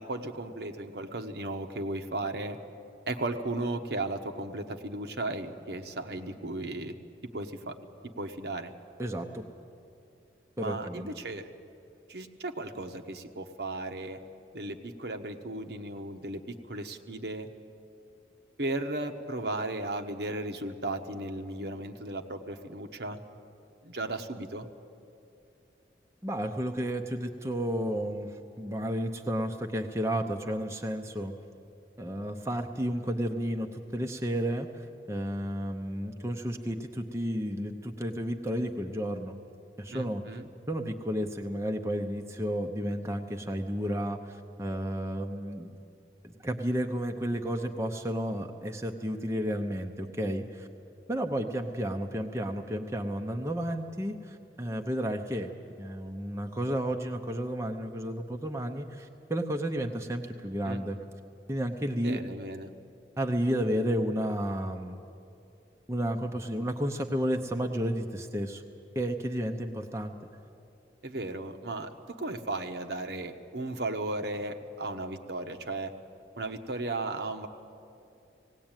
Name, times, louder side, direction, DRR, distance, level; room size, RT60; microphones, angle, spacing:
voice 1, 0.0-2.6 3.1-6.9 7.3-7.7 8.0-8.7 10.6-11.5 12.1-14.2 14.5-16.4 16.7-17.5 18.6-23.2 23.8-24.7 39.9-40.5 60.6-61.0 62.0-62.7 71.0-75.9 76.3-77.5, right 2 dB, 65° right, 5 dB, 1.1 m, -35 dB
voice 2, 9.0-9.4 10.6-11.1 26.2-31.3 32.0-39.4 39.8-40.2 40.7-45.7 46.2-50.7 51.1-55.5 55.8-61.0 61.5-62.2 63.2-65.0 65.9-68.6 68.9-70.1, equal, 15° right, 3 dB, 0.8 m, -32 dB
18.5 x 18.0 x 9.0 m, 2.6 s
head